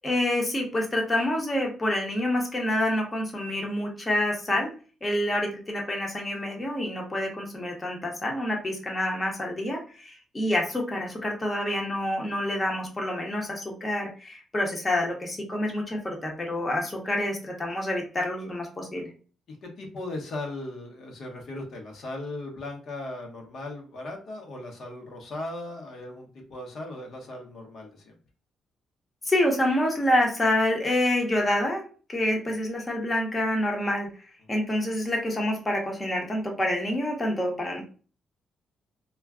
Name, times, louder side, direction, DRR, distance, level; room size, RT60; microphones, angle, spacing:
voice 1, 0.0-4.7 5.0-19.1 29.2-34.1 34.5-37.8, left 1 dB, 20° left, 0 dB, 0.8 m, -27 dB
voice 2, 19.5-28.1, left 2 dB, 60° left, 1 dB, 0.8 m, -38 dB
2.3 x 2.2 x 3.5 m, 0.38 s
cardioid pair, 90°, 0 cm